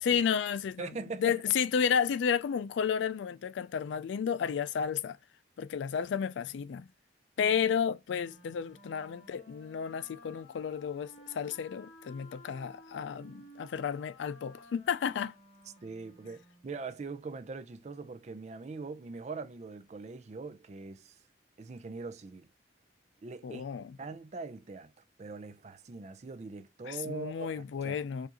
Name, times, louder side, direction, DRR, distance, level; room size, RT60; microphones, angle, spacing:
voice 1, 0.0-0.9 1.2-5.2 5.6-6.9 7.4-15.3 23.4-23.8 26.8-28.3, left 7 dB, 90° left, 0.3 m, -32 dB
voice 2, 0.8-1.4 15.8-21.2 21.6-22.5 23.2-23.6 24.0-24.9 25.2-28.0, right 4 dB, 40° right, 0.4 m, -42 dB
Wind instrument woodwind instrument, 8.1-16.8, equal, 40° left, 2.1 m, -55 dB
4.6 x 2.5 x 2.9 m
head